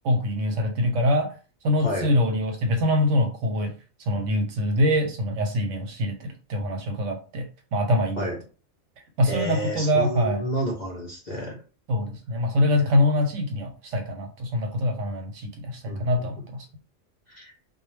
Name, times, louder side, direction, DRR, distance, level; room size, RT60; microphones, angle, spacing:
voice 1, 0.0-1.3 1.6-3.7 4.0-8.3 9.2-10.5 11.9-16.7, left 1 dB, 75° right, 4 dB, 0.9 m, -24 dB
voice 2, 9.2-11.6 15.9-16.0 17.3-17.5, equal, 50° left, -2 dB, 0.5 m, -30 dB
2.2 x 2.0 x 3.1 m, 0.36 s
omnidirectional pair, 1.3 m